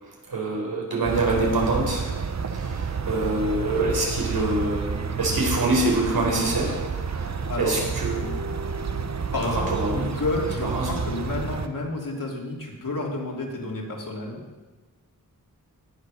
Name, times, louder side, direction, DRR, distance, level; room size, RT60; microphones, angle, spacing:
voice 1, 0.0-2.0 2.5-6.8 7.1-8.3 9.4-10.1 10.6-10.9, right 2 dB, 85° right, -2 dB, 4.4 m, -25 dB
sound 1, 1.0-11.7, right 5 dB, 50° right, 0.9 m, -30 dB
voice 2, 7.4-7.7 9.3-9.7 9.9-14.4, left 2 dB, 65° left, -1 dB, 3.1 m, -30 dB
17.5 x 7.8 x 6.3 m, 1.2 s
wide cardioid pair, 95°, 35 cm